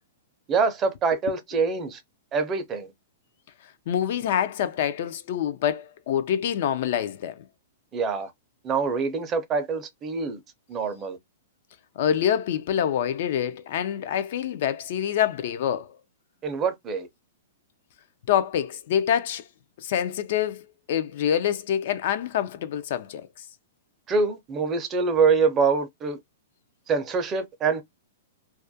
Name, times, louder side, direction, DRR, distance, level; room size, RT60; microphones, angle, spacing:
voice 1, 0.5-2.0 2.3-2.9 7.9-8.3 8.6-10.4 10.7-11.2 16.4-17.1 24.1-26.2 26.9-27.8, right 5 dB, 20° right, 0.5 m, -25 dB
voice 2, 3.9-7.4 12.0-15.9 18.3-19.4 19.8-23.3, left 9 dB, 55° left, 0.3 m, -26 dB
2.3 x 2.1 x 2.6 m
hypercardioid pair, 150°, 0 cm